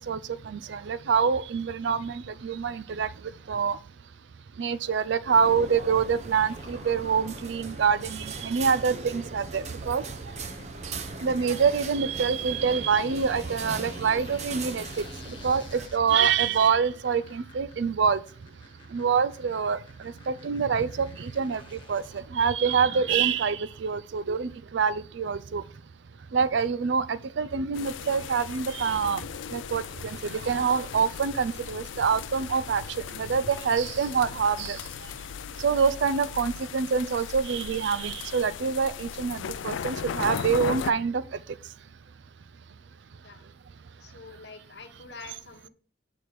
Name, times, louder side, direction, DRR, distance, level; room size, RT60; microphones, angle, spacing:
voice 1, 0.5-3.1 3.5-3.8 4.6-10.0 11.2-14.8 15.4-15.6 15.9-18.2 18.9-19.8 20.3-21.6 21.9-25.6 26.3-29.2 29.5-32.8 33.2-34.8 35.6-41.2, right 6 dB, 75° right, 0.4 m, -26 dB
sound 1, 5.3-15.9, right 3 dB, 35° right, 0.6 m, -39 dB
sound 2, 6.3-23.8, left 3 dB, 25° left, 1.1 m, -49 dB
sound 3, 27.7-40.9, left 7 dB, 90° left, 0.4 m, -37 dB
voice 2, 44.0-45.7, left 4 dB, 65° left, 1.1 m, -46 dB
8.4 x 4.2 x 4.7 m
head